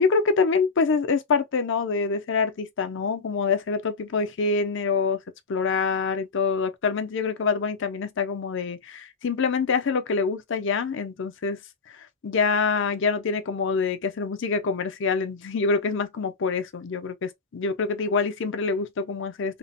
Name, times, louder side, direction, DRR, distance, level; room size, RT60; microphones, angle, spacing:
voice 1, 0.0-5.2 5.5-11.6 11.9-19.6, left 4 dB, 65° left, 0.5 m, -25 dB
2.9 x 2.1 x 2.6 m
head